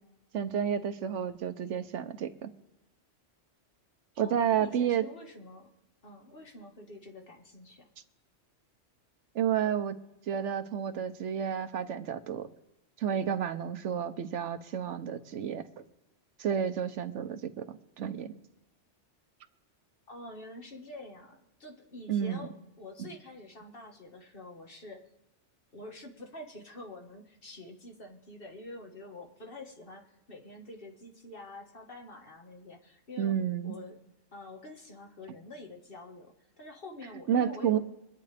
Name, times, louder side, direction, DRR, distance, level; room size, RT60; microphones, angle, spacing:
voice 1, 0.3-2.5 4.2-5.1 9.3-10.0 10.3-12.5 13.0-15.7 16.4-18.4 22.1-22.4 23.0-23.1 33.2-33.7 37.3-37.8, right 8 dB, 80° right, 10 dB, 1.1 m, -31 dB
voice 2, 4.2-5.7 6.0-7.9 20.1-22.5 22.8-25.0 25.7-33.4 33.6-34.0 34.3-37.8, left 2 dB, 50° left, 2 dB, 1.7 m, -47 dB
24.5 x 9.4 x 3.4 m, 1.0 s
omnidirectional pair, 1.2 m